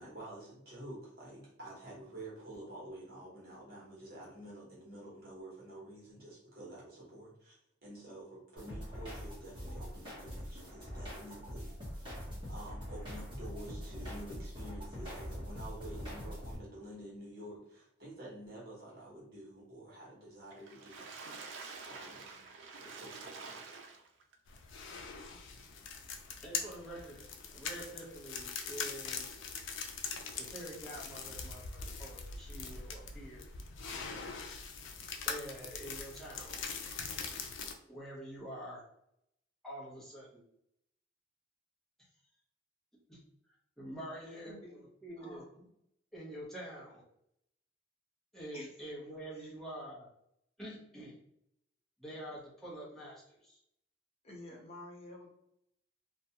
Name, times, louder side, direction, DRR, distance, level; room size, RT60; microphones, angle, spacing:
voice 1, 0.0-21.1 21.9-22.4 22.8-23.6, right 1 dB, 55° right, -5 dB, 1.0 m, -49 dB
sound 1, 8.6-16.6, equal, 25° right, 0.9 m, -43 dB
Water / Splash splatter, 20.5-24.3 24.9-25.0 25.3-25.4, right 4 dB, 75° right, 0.4 m, -48 dB
sound 2, 24.5-37.7, left 5 dB, 85° left, 0.4 m, -42 dB
voice 2, 26.4-27.2 27.5-29.4 30.4-33.5 35.2-36.6 37.9-38.9 39.6-40.4 43.1-43.2 43.8-44.5 45.0-45.4 46.1-47.0 48.3-50.1 50.6-51.1 52.0-53.6, right 1 dB, ahead, -7 dB, 0.7 m, -46 dB
voice 3, 44.4-44.9 45.2-45.7 48.5-48.8 49.3-49.5 54.2-55.3, left 1 dB, 35° left, -1 dB, 0.7 m, -50 dB
2.4 x 2.2 x 2.7 m, 0.76 s
head